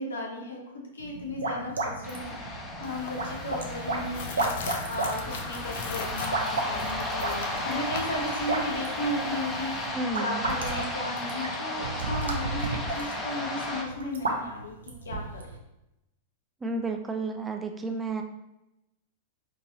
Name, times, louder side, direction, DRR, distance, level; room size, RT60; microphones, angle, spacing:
voice 1, 0.0-2.3 2.8-15.5, left 1 dB, 80° left, -1 dB, 0.8 m, -35 dB
sound 1, 1.0-15.6, right 2 dB, 80° right, 0.5 m, -34 dB
sound 2, 2.0-13.8, left 1 dB, 15° left, 0.7 m, -34 dB
sound 3, 2.8-9.9, left 5 dB, 65° left, 0.4 m, -40 dB
voice 2, 9.9-10.4 16.6-18.2, right 3 dB, 15° right, 4 dB, 0.4 m, -31 dB
3.9 x 2.5 x 2.8 m, 0.90 s
hypercardioid pair, 100°, 0 cm